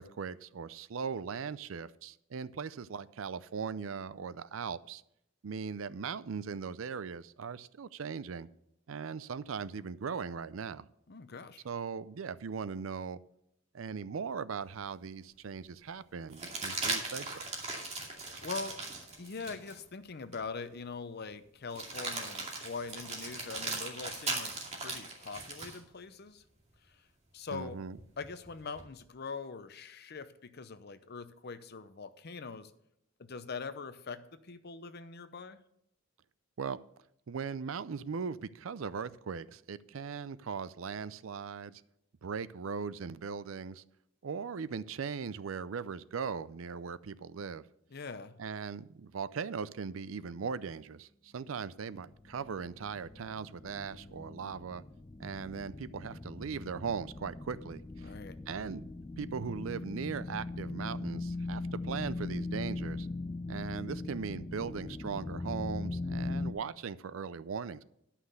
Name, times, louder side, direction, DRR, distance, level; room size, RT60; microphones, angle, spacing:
voice 1, 0.0-5.0 5.4-8.5 8.9-10.9 11.6-13.2 13.7-17.5 27.5-28.0 36.6-36.8 37.3-41.8 42.2-43.8 44.2-47.6 48.4-54.8 55.2-58.1 58.5-58.9 59.2-63.1 63.5-67.8, right 6 dB, 90° right, 16 dB, 0.5 m, -39 dB
voice 2, 11.1-11.6 18.0-18.8 19.2-26.4 26.9-27.0 27.3-27.8 28.2-32.7 33.2-35.6 47.9-48.3 58.0-58.4, left 4 dB, 55° left, 11 dB, 0.7 m, -43 dB
sound 1, 14.7-14.8 16.3-19.8 20.3-20.4 21.7-25.8 28.0-28.8, right 3 dB, 35° right, 2.4 m, -38 dB
sound 2, 52.0-66.5, left 2 dB, 20° left, 0.4 m, -40 dB
11.5 x 5.8 x 6.6 m, 0.78 s
head